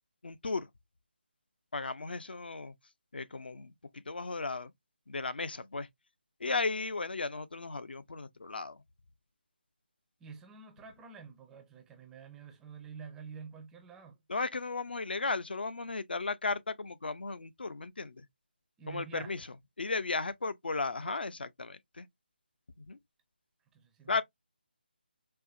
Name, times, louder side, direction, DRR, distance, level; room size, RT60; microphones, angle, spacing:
voice 1, 0.2-0.7 1.7-2.7 3.1-4.7 5.1-5.9 6.4-8.8 14.3-18.2 18.9-19.4 19.8-22.1 22.8-23.0 24.1-24.2, left 3 dB, 70° left, 0.6 m, -35 dB
voice 2, 10.2-14.2 18.8-19.4 23.7-24.2, right 6 dB, 5° right, 0.5 m, -48 dB
4.5 x 2.5 x 2.6 m
figure-of-eight pair, 160°, 6 cm